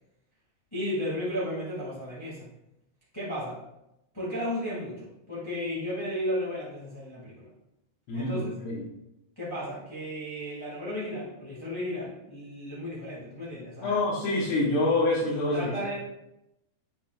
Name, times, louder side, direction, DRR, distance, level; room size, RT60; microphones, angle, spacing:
voice 1, 0.7-2.5 3.1-3.6 4.1-7.5 8.1-8.4 9.3-14.0 15.5-16.0, equal, 15° left, -9 dB, 0.8 m, -34 dB
voice 2, 8.1-8.8 13.8-15.7, left 2 dB, 75° left, -7 dB, 3.4 m, -26 dB
9.1 x 7.2 x 2.4 m, 0.87 s
omnidirectional pair, 4.8 m